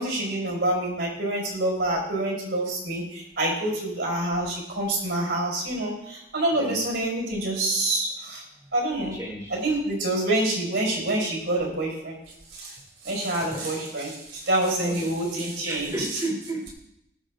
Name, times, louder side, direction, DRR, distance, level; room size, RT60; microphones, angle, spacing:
voice 1, 0.0-8.4 8.7-9.2 9.5-12.2 12.5-12.8 13.0-16.2, right 1 dB, 85° right, -1 dB, 5.5 m, -27 dB
voice 2, 9.1-9.6 13.4-13.6 14.8-15.1 15.7-16.7, right 1 dB, 20° right, -3 dB, 3.5 m, -33 dB
19.0 x 7.2 x 3.9 m, 0.81 s
head